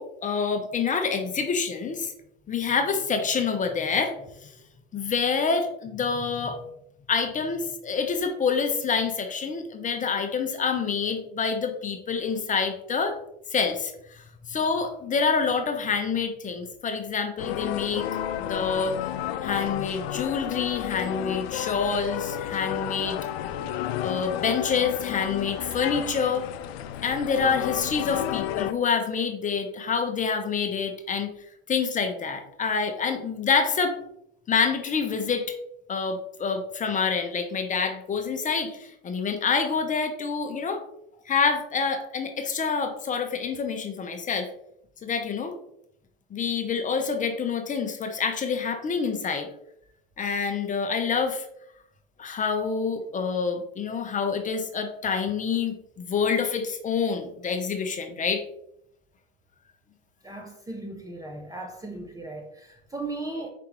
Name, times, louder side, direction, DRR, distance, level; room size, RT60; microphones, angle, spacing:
voice 1, 0.0-2.1 2.5-4.5 4.9-6.6 7.1-13.2 13.5-18.1 18.5-18.9 19.4-23.2 24.0-26.5 27.0-31.3 31.7-34.0 34.5-35.5 35.9-40.8 41.3-44.5 45.0-45.5 46.3-49.5 50.2-51.5 52.2-58.4, left 5 dB, 25° left, 0.7 m, -27 dB
sound 1, 17.4-28.7, left 11 dB, 80° left, 0.5 m, -31 dB
voice 2, 60.2-63.5, right 2 dB, 10° right, 0.6 m, -37 dB
5.0 x 3.3 x 3.0 m
hypercardioid pair, 100°, 31 cm